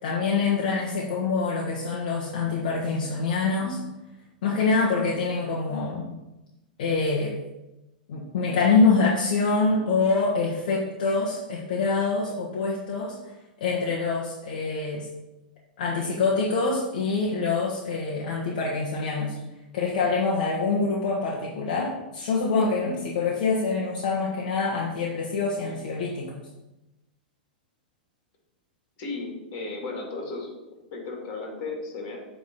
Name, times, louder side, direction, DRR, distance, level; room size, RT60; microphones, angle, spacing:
voice 1, 0.0-3.8 4.4-6.1 6.8-7.3 8.1-13.2 13.6-15.1 15.8-19.4 19.7-26.5, left 4 dB, 65° left, -3 dB, 1.3 m, -25 dB
voice 2, 29.0-30.5 30.9-32.2, left 3 dB, 50° left, 0 dB, 2.7 m, -34 dB
7.8 x 3.7 x 5.4 m, 0.99 s
hypercardioid pair, 115°, 5 cm